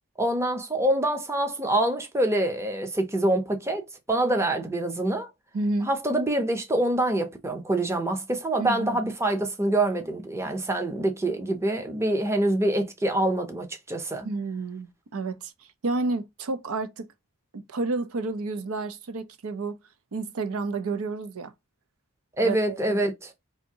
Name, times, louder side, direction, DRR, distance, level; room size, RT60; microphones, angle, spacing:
voice 1, 0.2-5.3 5.9-14.3 22.4-23.3, right 1 dB, 10° right, 0.6 m, -25 dB
voice 2, 5.5-5.9 8.6-9.1 14.2-15.5 15.8-17.1 17.5-19.8 20.1-21.5 22.4-23.0, right 3 dB, 75° right, 0.5 m, -30 dB
3.5 x 2.6 x 2.7 m
head